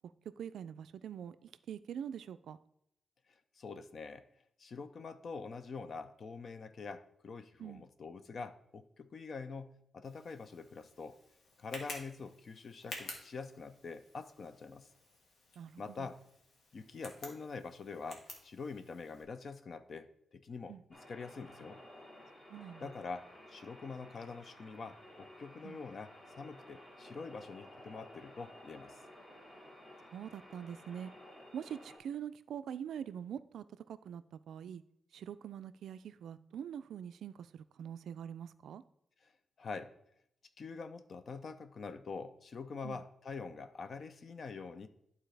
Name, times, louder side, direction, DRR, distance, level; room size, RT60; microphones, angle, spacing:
voice 1, 0.0-2.6 7.6-7.9 15.6-16.1 20.7-20.8 22.5-22.9 25.6-25.8 30.1-31.1 31.5-34.8 35.1-38.8 42.8-43.0, right 8 dB, 90° right, 14 dB, 0.3 m, -44 dB
voice 2, 3.3-4.2 4.6-11.2 11.6-14.9 15.8-16.2 16.7-21.8 22.8-29.0 39.2-39.3 39.6-39.9 40.6-44.9, left 4 dB, 40° left, 11 dB, 0.5 m, -45 dB
Tick, 10.0-19.2, left 2 dB, 65° left, 1.4 m, -52 dB
sound 1, 20.9-32.0, left 1 dB, 25° left, 1.5 m, -55 dB
11.5 x 3.9 x 3.3 m, 0.74 s
wide cardioid pair, 175°, 0 cm